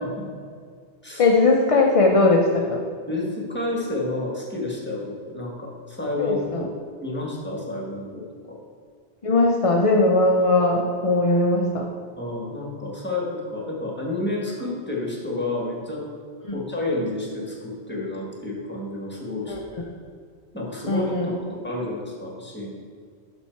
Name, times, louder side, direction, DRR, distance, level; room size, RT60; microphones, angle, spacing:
voice 1, 1.2-2.8 6.2-6.7 9.2-11.9 16.4-16.6 19.5-19.6 20.9-21.4, left 2 dB, 40° left, 0 dB, 0.6 m, -19 dB
voice 2, 3.1-6.7 7.0-8.6 12.2-16.1 16.5-19.9 20.5-22.7, left 2 dB, 10° left, -3 dB, 1.5 m, -30 dB
7.1 x 6.3 x 4.5 m, 2.1 s
omnidirectional pair, 1.2 m